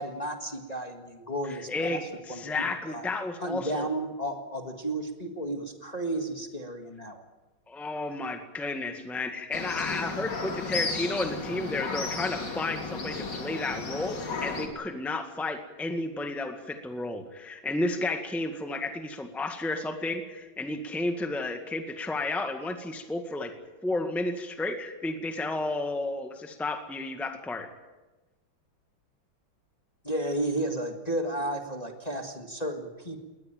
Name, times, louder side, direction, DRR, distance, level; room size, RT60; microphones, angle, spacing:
voice 1, 0.0-3.1 3.4-7.2 30.0-33.2, right 1 dB, 20° left, 4 dB, 1.8 m, -33 dB
voice 2, 1.5-2.0 2.3-3.9 7.7-23.5 23.8-27.7, left 2 dB, ahead, 6 dB, 1.5 m, -32 dB
sound 1, 9.5-14.7, left 3 dB, 60° left, 3.3 m, -34 dB
21.0 x 19.0 x 9.0 m, 1.1 s
omnidirectional pair, 2.2 m